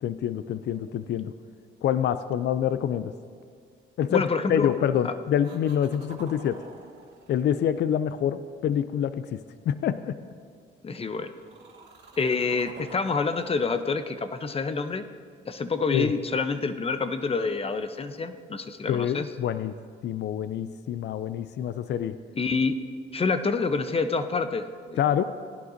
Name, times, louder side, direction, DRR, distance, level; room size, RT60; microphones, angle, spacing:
voice 1, 0.0-1.3 1.8-3.1 4.0-6.6 7.3-10.2 15.9-16.1 18.9-19.7 20.0-22.2 25.0-25.2, left 9 dB, 60° left, 13 dB, 0.4 m, -26 dB
sound 1, 0.6-1.8 4.5-5.0 5.4-8.7 10.9-15.3 19.0-19.1, right 4 dB, 60° right, 2.5 m, -50 dB
voice 2, 4.1-4.7 5.0-5.1 10.8-11.3 12.2-15.1 15.5-19.3 22.4-22.8 23.1-25.0, left 4 dB, 30° left, 10 dB, 0.7 m, -27 dB
18.0 x 11.0 x 2.7 m, 2.1 s
cardioid pair, 90°, 20 cm